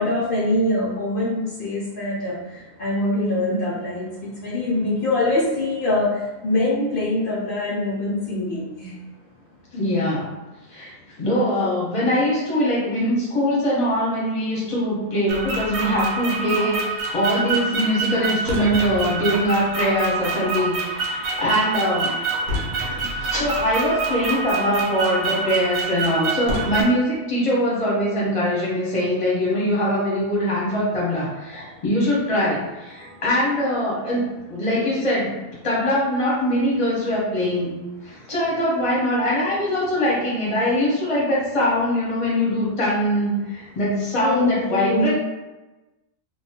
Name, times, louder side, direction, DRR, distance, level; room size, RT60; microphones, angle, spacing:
voice 1, 0.0-2.4 2.8-4.0 4.4-6.1 6.4-8.9 44.2-45.1, left 2 dB, 85° left, -6 dB, 0.4 m, -23 dB
voice 2, 9.7-10.2 10.7-10.9 11.2-22.1 22.9-35.4 35.6-37.7 38.0-45.1, equal, 30° left, -6 dB, 0.6 m, -22 dB
sound 1, 15.3-26.8, right 3 dB, 70° right, 0.9 m, -26 dB
2.6 x 2.2 x 2.7 m, 1.1 s
omnidirectional pair, 1.7 m